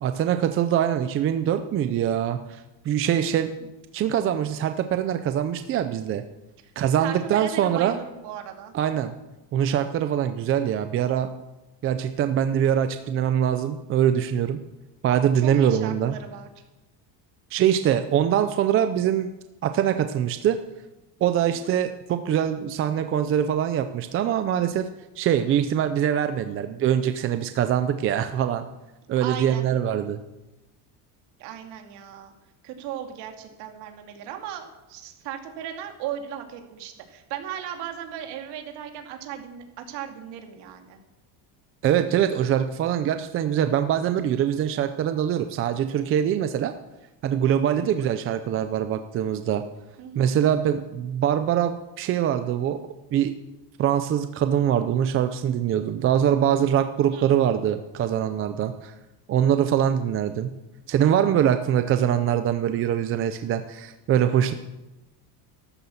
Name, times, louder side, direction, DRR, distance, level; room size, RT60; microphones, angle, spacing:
voice 1, 0.0-6.2 6.8-8.0 8.7-9.1 9.5-11.3 11.8-14.6 15.0-16.1 17.5-19.3 19.6-20.6 21.2-24.8 25.2-28.7 29.1-30.2 41.8-46.7 47.2-49.6 50.2-52.8 53.1-53.3 53.8-58.9 59.3-60.5 60.9-64.5, right 9 dB, 30° right, 9 dB, 0.5 m, -23 dB
voice 2, 7.0-8.7 15.4-16.5 29.2-29.7 31.4-32.3 32.6-41.0 47.8-48.1 50.0-50.3 57.1-57.4, right 9 dB, 60° right, 4 dB, 2.6 m, -36 dB
13.5 x 13.0 x 7.2 m, 1.0 s
cardioid pair, 170°, 47 cm